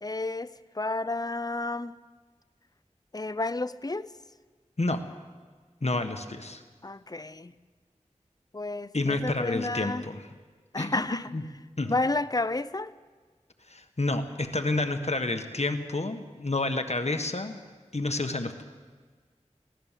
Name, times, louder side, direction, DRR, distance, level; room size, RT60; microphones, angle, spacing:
voice 1, 0.0-2.0 3.1-4.1 6.8-7.5 8.5-10.1 10.7-11.3 11.8-12.9, left 2 dB, 30° left, 0.6 m, -31 dB
voice 2, 5.8-6.6 8.9-10.3 10.8-11.0 11.3-11.4 11.8-12.0 13.7-17.5 17.9-18.6, left 2 dB, 60° left, 1.4 m, -29 dB
22.5 x 17.0 x 7.5 m
wide cardioid pair, 50°, 12 cm